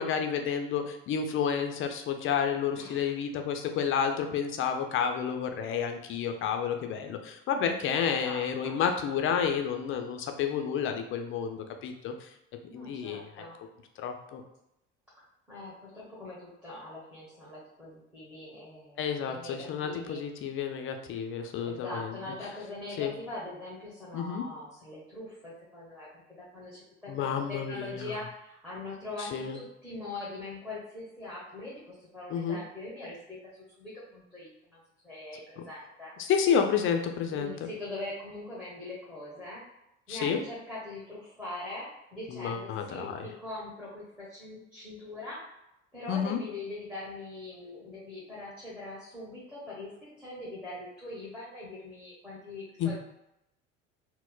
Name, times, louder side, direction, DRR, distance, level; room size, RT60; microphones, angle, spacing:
voice 1, 0.0-12.3 12.7-13.4 14.0-14.4 19.0-22.1 23.0-23.1 24.1-24.5 27.1-28.2 29.2-29.6 32.3-32.6 36.2-37.7 40.1-40.4 42.3-43.3 46.1-46.4 52.8-53.0, left 7 dB, 35° left, 5 dB, 0.4 m, -30 dB
voice 2, 2.7-3.1 7.9-8.8 12.7-13.6 15.5-20.2 21.6-33.4 33.8-34.8 35.0-36.1 37.3-39.6 40.1-45.5 45.9-53.0, left 2 dB, 5° right, -8 dB, 1.1 m, -42 dB
4.1 x 2.0 x 2.3 m, 0.84 s
hypercardioid pair, 65°, 37 cm